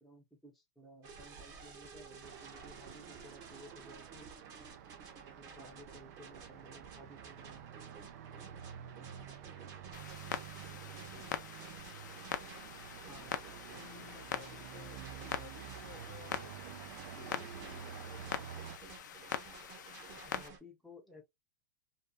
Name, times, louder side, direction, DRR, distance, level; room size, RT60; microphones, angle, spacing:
voice 1, 0.0-4.3 5.1-7.9 13.1-13.4 20.2-21.2, equal, ahead, 0.7 m, -56 dB
sound 1, 1.0-20.6, right 5 dB, 35° right, 0.9 m, -54 dB
Traffic noise roadway noise, 2.2-18.8, right 9 dB, 60° right, 0.4 m, -50 dB
Clock, 9.9-20.5, left 9 dB, 80° left, 0.4 m, -44 dB
voice 2, 10.7-11.4 13.7-16.5 17.2-18.7, left 8 dB, 55° left, 1.0 m, -56 dB
2.7 x 2.3 x 2.2 m
hypercardioid pair, 130°, 10 cm